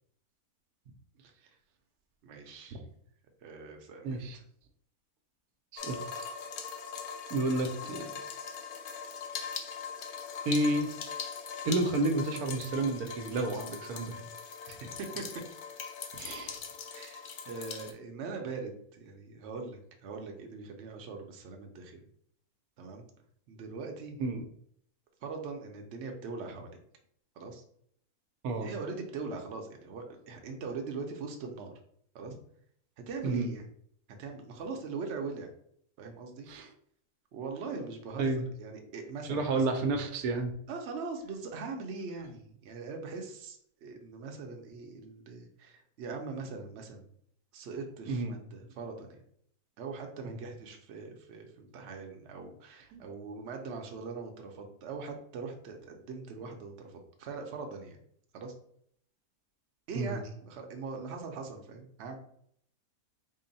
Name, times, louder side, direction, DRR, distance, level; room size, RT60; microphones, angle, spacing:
voice 1, 2.2-2.9 3.4-4.2 14.7-15.2 16.9-22.0 22.8-23.0 23.5-24.3 25.2-26.8 27.4-27.6 28.6-31.7 32.1-32.3 33.1-33.6 34.2-35.5 36.0-36.5 37.3-39.6 40.7-47.1 47.5-49.2 49.8-58.0 58.3-58.5 59.9-62.2, right 4 dB, 60° right, 3 dB, 0.8 m, -41 dB
voice 2, 4.0-4.4 5.7-6.0 7.3-8.1 10.4-10.9 11.6-14.2 16.2-16.6 24.2-24.5 28.4-28.7 33.2-33.5 36.5-36.7 38.2-38.4 39.3-40.5 48.1-48.4 52.9-53.0 59.9-60.2, right 2 dB, 85° right, 5 dB, 1.1 m, -30 dB
sound 1, 5.8-17.9, left 6 dB, 65° left, 0.7 m, -41 dB
3.8 x 2.1 x 3.9 m, 0.66 s
omnidirectional pair, 1.5 m